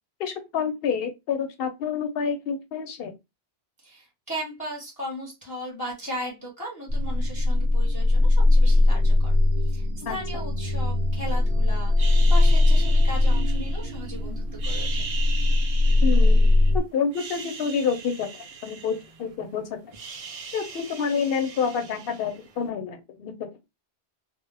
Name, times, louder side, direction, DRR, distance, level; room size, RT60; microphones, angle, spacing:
voice 1, 0.2-3.1 10.0-10.1 16.0-16.5 16.7-19.9 20.5-23.3, left 6 dB, 65° left, 0.7 m, -28 dB
voice 2, 3.8-15.0, equal, 20° left, 0.7 m, -37 dB
sound 1, 6.9-16.8, left 2 dB, 90° right, 0.9 m, -20 dB
sound 2, 12.0-14.1 14.5-16.7 17.1-19.5 19.7-22.6, right 5 dB, 65° right, 0.3 m, -39 dB
2.1 x 2.0 x 3.1 m
omnidirectional pair, 1.1 m